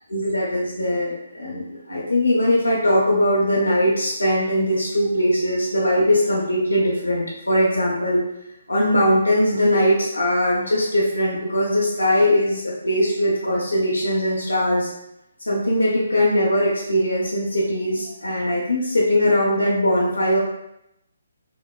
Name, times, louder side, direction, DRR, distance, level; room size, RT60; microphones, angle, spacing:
voice 1, 0.1-8.2 8.7-14.9 15.5-20.4, equal, 90° left, -6 dB, 0.5 m, -20 dB
2.9 x 2.1 x 2.3 m, 0.84 s
figure-of-eight pair, 140°, 0 cm